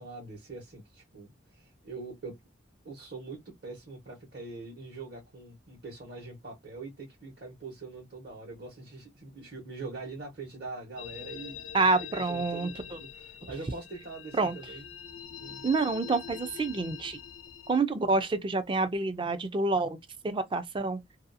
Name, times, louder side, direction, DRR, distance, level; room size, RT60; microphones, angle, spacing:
voice 1, 0.0-2.4 2.8-11.6 11.8-14.9 15.4-15.7, right 3 dB, 50° right, 1.1 m, -43 dB
sound 1, 11.0-17.8, left 9 dB, 90° left, 0.5 m, -44 dB
voice 2, 11.7-12.7 14.4-14.5 15.6-17.2 17.7-20.0 20.2-21.0, right 3 dB, 25° right, 0.4 m, -27 dB
2.7 x 2.3 x 2.6 m
head